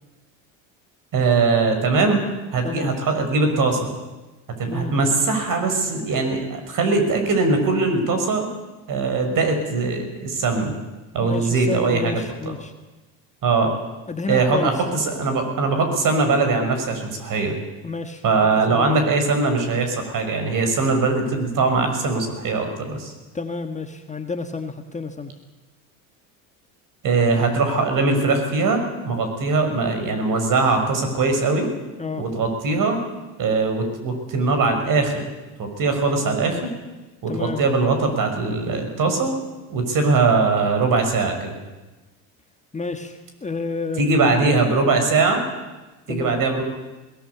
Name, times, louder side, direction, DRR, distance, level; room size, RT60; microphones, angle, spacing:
voice 1, 1.1-2.2 2.5-3.9 4.6-8.5 8.9-10.7 11.1-12.2 12.4-12.5 13.4-13.7 14.3-17.5 18.2-23.1 27.0-31.7 32.2-33.0 33.4-35.2 35.6-36.7 37.2-39.3 39.7-41.5 44.0-45.4 46.1-46.6, right 3 dB, 50° right, 5 dB, 6.3 m, -21 dB
voice 2, 11.2-12.7 14.1-14.7 17.8-18.2 18.7-19.0 23.3-25.3 32.0-32.2 37.3-37.6 42.7-44.4 44.8-44.9 46.1-46.3, left 3 dB, 15° left, 6 dB, 1.7 m, -30 dB
21.0 x 19.0 x 8.5 m, 1.1 s
supercardioid pair, 90°, 43 cm